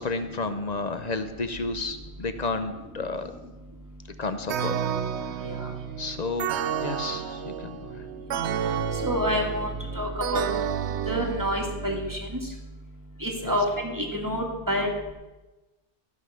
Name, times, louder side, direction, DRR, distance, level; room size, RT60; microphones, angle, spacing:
voice 1, 0.0-3.3 4.2-4.8 5.2-5.6 6.0-6.5 6.8-8.1 13.4-13.6, left 3 dB, 40° left, 9 dB, 0.8 m, -32 dB
sound 1, 4.5-12.1, right 8 dB, 70° right, 0.9 m, -31 dB
voice 2, 9.0-9.7 10.0-10.5 11.1-12.2 13.2-14.9, equal, 15° right, 1 dB, 1.8 m, -27 dB
14.0 x 5.7 x 6.4 m, 1.1 s
omnidirectional pair, 1.2 m